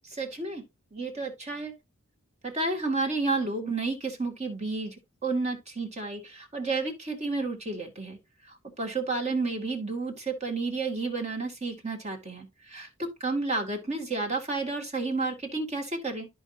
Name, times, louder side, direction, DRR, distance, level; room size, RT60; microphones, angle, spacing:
voice 1, 0.1-0.6 0.9-1.7 2.4-5.0 5.2-8.2 8.5-16.3, right 3 dB, 30° right, 2.2 m, -31 dB
13.0 x 4.6 x 2.7 m
head